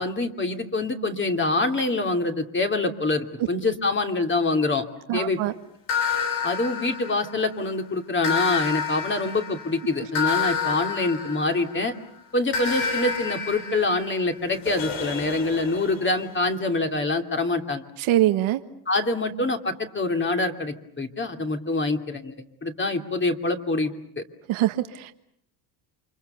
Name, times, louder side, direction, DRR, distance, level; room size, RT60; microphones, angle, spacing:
voice 1, 0.0-4.8 5.1-5.4 6.4-11.9 12.3-17.8 18.9-22.3 22.6-24.2, left 2 dB, 20° left, 5 dB, 2.8 m, -25 dB
voice 2, 5.1-5.5 18.0-18.6 24.5-25.1, right 14 dB, 70° right, 8 dB, 1.5 m, -23 dB
sound 1, 5.9-7.6 8.2-11.9 12.5-16.3, left 6 dB, 85° left, 6.5 m, -29 dB
29.0 x 25.5 x 6.9 m, 0.70 s
cardioid pair, 105°, 50 cm